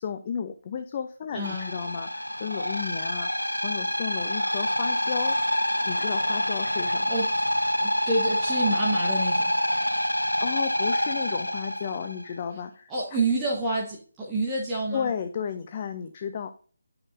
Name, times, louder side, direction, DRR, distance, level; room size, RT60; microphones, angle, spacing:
voice 1, 0.0-5.4 5.8-7.1 10.4-13.2 14.9-16.5, left 7 dB, 25° left, 8 dB, 0.5 m, -33 dB
voice 2, 1.3-1.7 7.1-7.3 7.8-9.5 12.9-15.1, right 2 dB, 10° right, -5 dB, 1.1 m, -28 dB
sound 1, 1.4-12.2, equal, 85° left, 0.5 m, -27 dB
10.5 x 5.7 x 2.6 m, 0.43 s
figure-of-eight pair, 155°, 0 cm